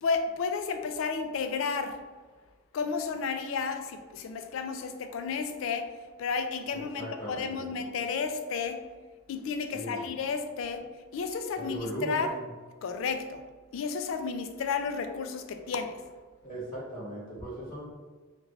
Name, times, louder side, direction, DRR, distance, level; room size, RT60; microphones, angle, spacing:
voice 1, 0.0-2.0 2.7-5.9 6.2-8.8 9.3-10.9 11.1-12.3 12.8-13.4 13.7-16.0, left 5 dB, 65° left, 7 dB, 0.3 m, -32 dB
voice 2, 6.7-7.6 9.7-10.1 11.6-12.4 16.4-17.8, right 1 dB, 30° left, -8 dB, 1.0 m, -38 dB
3.3 x 2.4 x 3.1 m, 1.3 s
head